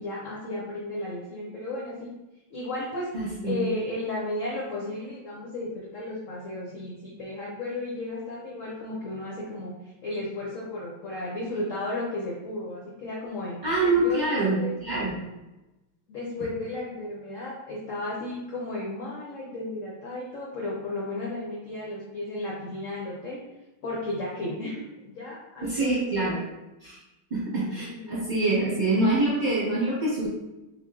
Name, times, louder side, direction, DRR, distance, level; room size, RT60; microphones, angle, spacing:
voice 1, 0.0-2.1 2.5-13.6 14.0-14.8 16.1-23.4 23.8-26.3 27.7-28.2, left 2 dB, 65° left, -5 dB, 0.8 m, -34 dB
voice 2, 3.1-3.6 13.6-15.2 25.6-26.4 26.8-27.0 27.3-30.3, right 2 dB, 30° right, -8 dB, 1.1 m, -25 dB
3.6 x 3.3 x 2.4 m, 1.0 s
omnidirectional pair, 2.0 m